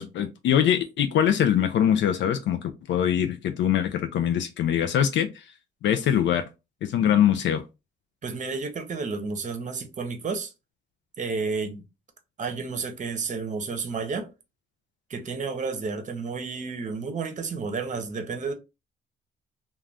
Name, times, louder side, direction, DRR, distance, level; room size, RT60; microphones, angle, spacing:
voice 1, 0.0-5.5 5.8-6.5 6.8-7.6, left 9 dB, 70° left, 0.4 m, -23 dB
voice 2, 8.2-10.5 11.2-11.8 12.4-14.3 15.1-18.5, right 4 dB, 40° right, 0.7 m, -31 dB
2.5 x 2.3 x 3.3 m
cardioid pair, 90°, 20 cm